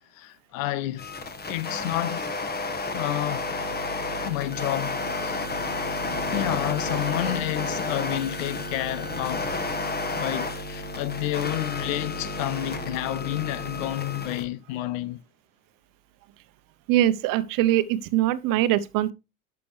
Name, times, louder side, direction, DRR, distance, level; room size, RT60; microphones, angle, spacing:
voice 1, 0.1-1.1 1.5-2.3 2.9-3.5 4.2-5.5 6.3-9.6 10.2-15.2, left 15 dB, 70° left, 0.8 m, -30 dB
sound 1, 1.0-14.5, left 2 dB, 25° left, 1.6 m, -31 dB
voice 2, 16.9-19.1, right 13 dB, 50° right, 0.9 m, -22 dB
11.0 x 6.0 x 3.3 m
hypercardioid pair, 95°, 42 cm